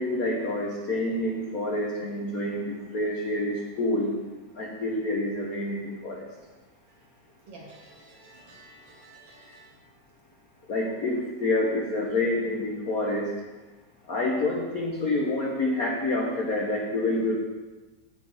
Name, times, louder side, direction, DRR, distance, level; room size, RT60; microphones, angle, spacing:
voice 1, 0.0-4.1 4.5-6.2 10.7-13.3 14.1-17.3, left 2 dB, 60° left, -2 dB, 0.9 m, -27 dB
voice 2, 7.5-9.7, right 2 dB, 55° right, -2 dB, 2.8 m, -50 dB
8.4 x 8.2 x 5.0 m, 1.2 s
omnidirectional pair, 3.3 m